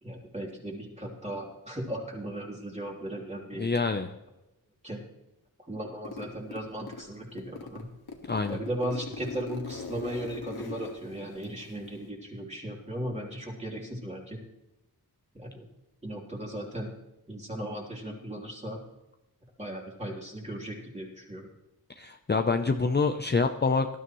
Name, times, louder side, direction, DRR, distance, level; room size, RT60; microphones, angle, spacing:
voice 1, 0.0-3.7 4.8-5.0 5.7-7.9 8.5-14.4 15.3-15.6 16.0-16.9 17.3-18.8 19.6-21.5, right 1 dB, 15° right, -2 dB, 3.4 m, -37 dB
voice 2, 3.6-4.1 8.3-8.6 22.0-23.9, left 4 dB, 25° left, 6 dB, 0.6 m, -26 dB
Zipper (clothing), 6.0-7.1 7.4-12.1, left 4 dB, 75° left, 2.0 m, -41 dB
19.0 x 12.5 x 3.1 m, 0.95 s
wide cardioid pair, 90°, 38 cm